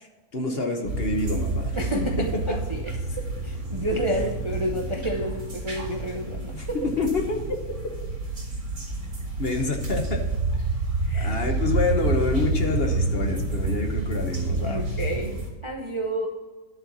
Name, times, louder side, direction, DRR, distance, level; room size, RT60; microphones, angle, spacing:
voice 1, 0.3-1.8 2.5-2.6 6.5-6.7 7.0-7.7 9.4-10.2 11.2-14.9, left 3 dB, 45° left, 3 dB, 1.1 m, -27 dB
sound 1, 0.8-15.5, right 2 dB, 75° right, 2.5 m, -28 dB
voice 2, 1.7-6.9 11.0-11.4 14.6-16.3, right 1 dB, 30° right, 1 dB, 0.6 m, -30 dB
10.5 x 4.4 x 7.3 m, 1.3 s
omnidirectional pair, 1.5 m